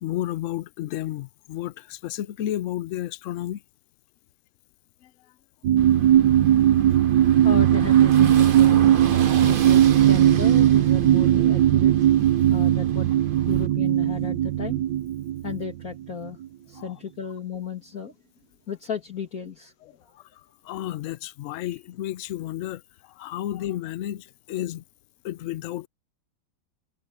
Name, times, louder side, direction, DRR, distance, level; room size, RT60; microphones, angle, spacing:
voice 1, 0.0-3.6 16.8-16.9 20.7-22.8 23.2-24.8 25.2-25.9, left 13 dB, 85° left, 0.6 m, -31 dB
sound 1, 5.6-15.7 16.3-16.4, right 11 dB, 75° right, 1.4 m, -18 dB
Car passing by / Engine, 5.8-13.7, right 7 dB, 45° right, 0.7 m, -36 dB
voice 2, 7.4-8.9 9.4-11.9 12.5-14.8 15.4-16.4 16.7-18.1 18.7-19.7 20.1-20.2, left 6 dB, 50° left, 2.5 m, -34 dB
omnidirectional pair, 2.0 m